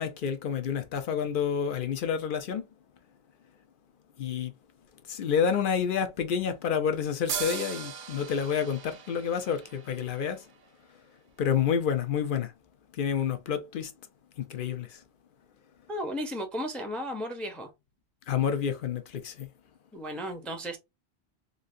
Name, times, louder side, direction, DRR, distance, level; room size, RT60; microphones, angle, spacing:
voice 1, 0.0-2.7 4.2-4.5 5.0-10.5 10.9-11.0 11.4-12.5 12.9-13.9 14.4-15.0 18.3-19.5, left 7 dB, 60° left, 0.7 m, -29 dB
sound 1, 7.3-10.8, right 8 dB, 60° right, 0.6 m, -39 dB
voice 2, 15.9-17.7 19.9-20.8, equal, ahead, 0.4 m, -34 dB
3.1 x 2.6 x 2.5 m
omnidirectional pair, 1.1 m